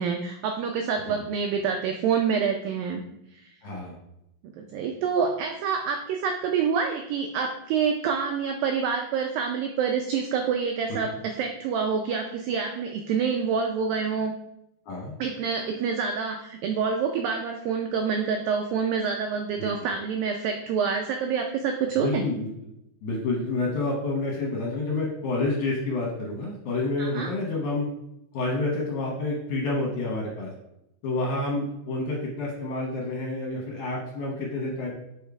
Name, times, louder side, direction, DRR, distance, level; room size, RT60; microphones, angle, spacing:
voice 1, 0.0-3.0 4.6-14.3 15.2-22.2 27.0-27.3, right 6 dB, 90° right, 4 dB, 2.0 m, -27 dB
voice 2, 3.6-4.0 10.9-11.2 14.9-15.1 19.6-19.7 22.0-22.5 23.0-27.9 28.3-30.5 31.0-34.9, left 2 dB, 70° left, -2 dB, 2.0 m, -29 dB
5.4 x 5.3 x 4.7 m, 0.83 s
omnidirectional pair, 4.7 m